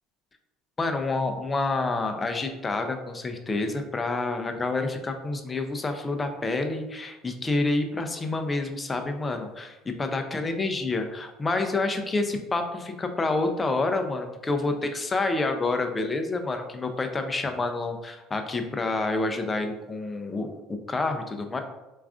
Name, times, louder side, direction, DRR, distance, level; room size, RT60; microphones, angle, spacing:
voice 1, 0.8-21.6, left 3 dB, 20° left, 6 dB, 0.3 m, -28 dB
2.3 x 2.3 x 3.5 m, 1.0 s
cardioid pair, 125°, 0 cm